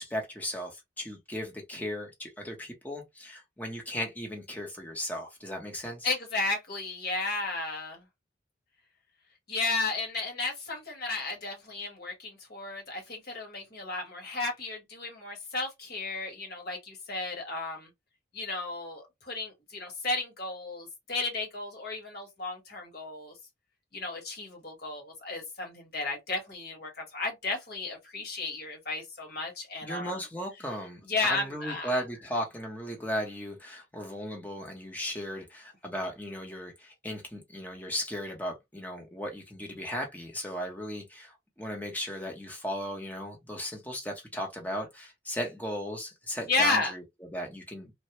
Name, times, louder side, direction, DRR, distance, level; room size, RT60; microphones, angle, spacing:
voice 1, 0.0-6.1 29.8-47.0 47.3-47.9, equal, 10° left, 0.8 m, -36 dB
voice 2, 6.0-8.0 9.5-17.9 18.3-23.3 23.9-30.2 31.1-32.0 46.5-46.9, left 3 dB, 50° left, 1.3 m, -33 dB
3.2 x 2.2 x 2.9 m
head